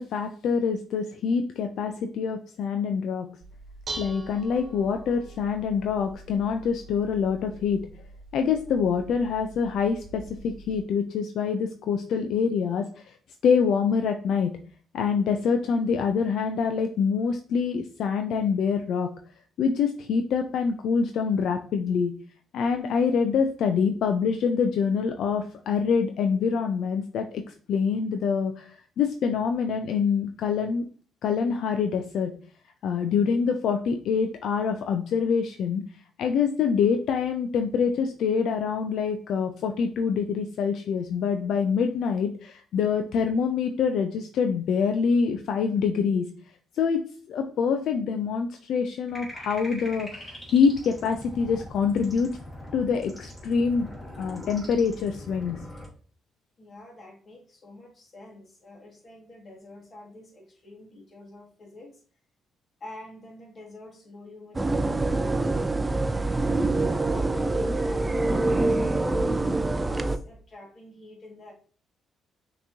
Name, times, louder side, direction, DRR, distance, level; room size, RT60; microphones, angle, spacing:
voice 1, 0.0-3.3 4.0-7.8 8.3-13.1 13.4-14.5 14.9-19.1 19.6-22.1 22.5-28.7 29.0-30.8 31.2-32.3 32.8-35.8 36.2-46.3 46.8-47.0 47.3-52.3 52.7-53.9 54.2-55.6, left 6 dB, 75° left, 6 dB, 0.4 m, -25 dB
Dishes pots and pans, 3.4-10.8, right 3 dB, 45° right, 1.2 m, -44 dB
sound 1, 49.1-55.9, left 1 dB, 15° left, 1.8 m, -42 dB
voice 2, 56.6-62.0 62.8-66.6 67.1-71.5, left 1 dB, 40° left, -1 dB, 1.7 m, -47 dB
sound 2, 64.5-70.2, right 2 dB, 20° right, 0.4 m, -25 dB
5.8 x 3.0 x 2.7 m, 0.43 s
cardioid pair, 90°, 0 cm